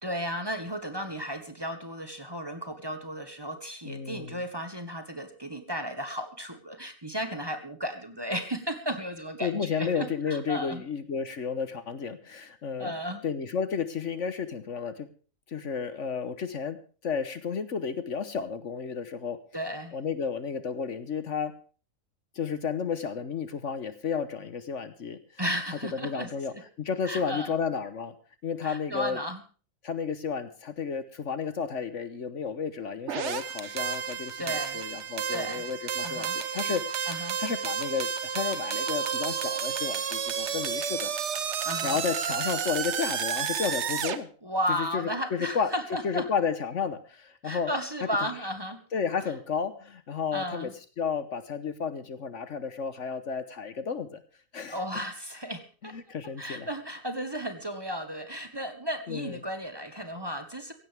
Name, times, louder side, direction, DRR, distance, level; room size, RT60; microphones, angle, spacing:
voice 1, 0.0-10.8 12.8-13.2 19.5-19.9 25.4-26.6 27.0-27.5 28.6-29.4 34.4-34.8 35.3-35.7 36.0-36.4 37.1-37.4 41.6-42.0 44.4-46.3 47.4-48.8 50.3-50.7 54.7-55.9 56.4-60.7, equal, 15° right, 6 dB, 1.5 m, -34 dB
voice 2, 3.8-4.4 9.4-12.9 13.2-15.1 15.5-16.8 17.0-19.4 19.9-21.6 22.3-25.2 26.0-28.1 28.4-29.2 29.8-41.1 41.8-44.3 44.8-45.7 46.0-47.7 48.9-50.7 51.0-54.2 54.5-55.0 55.9-56.7 59.1-59.4, left 6 dB, 60° left, 12 dB, 1.4 m, -32 dB
sound 1, 33.1-44.2, right 7 dB, 55° right, 1.2 m, -31 dB
17.0 x 16.0 x 3.5 m, 0.38 s
omnidirectional pair, 1.5 m